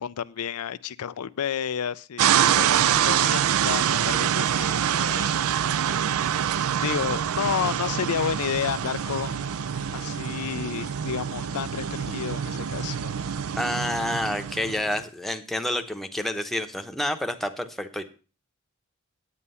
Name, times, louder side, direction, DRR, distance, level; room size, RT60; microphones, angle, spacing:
voice 1, 0.0-2.8 3.1-5.5 5.9-6.2 6.8-9.6 9.9-13.1, left 8 dB, 80° left, 14 dB, 0.4 m, -31 dB
sound 1, 2.2-15.0, right 9 dB, 70° right, 0.4 m, -25 dB
sound 2, 3.6-13.6, left 4 dB, 50° left, 0.9 m, -46 dB
voice 2, 13.6-18.0, left 1 dB, ahead, 6 dB, 0.9 m, -29 dB
9.7 x 8.7 x 5.5 m, 0.36 s
head